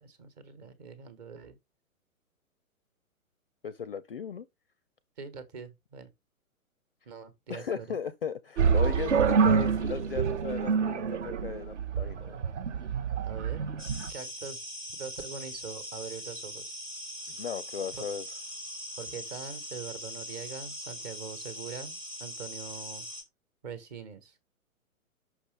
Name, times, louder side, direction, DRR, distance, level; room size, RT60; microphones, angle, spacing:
voice 1, 0.0-1.6 5.2-6.1 7.1-7.9 13.2-13.6 14.1-14.6 15.0-16.7 17.9-18.0 19.0-23.0 23.6-24.4, right 6 dB, 30° right, 1.2 m, -43 dB
voice 2, 3.6-4.5 7.5-12.4 17.3-18.3, left 7 dB, 45° left, 0.4 m, -36 dB
sound 1, 8.6-14.1, right 6 dB, 55° right, 0.8 m, -27 dB
sound 2, 13.8-23.2, equal, 10° right, 0.9 m, -41 dB
5.9 x 5.2 x 3.3 m
figure-of-eight pair, 120°, 43 cm